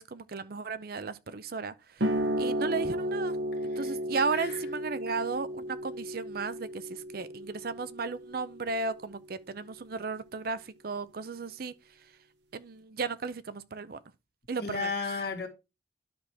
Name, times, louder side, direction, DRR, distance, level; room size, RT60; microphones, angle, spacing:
voice 1, 0.0-2.1 2.4-3.4 3.8-11.7 12.5-14.0 14.5-14.9, right 4 dB, 50° right, 0.5 m, -35 dB
sound 1, 2.0-9.1, equal, 70° right, 1.1 m, -34 dB
voice 2, 14.6-15.5, left 4 dB, 55° left, 1.8 m, -33 dB
10.5 x 6.0 x 3.4 m
head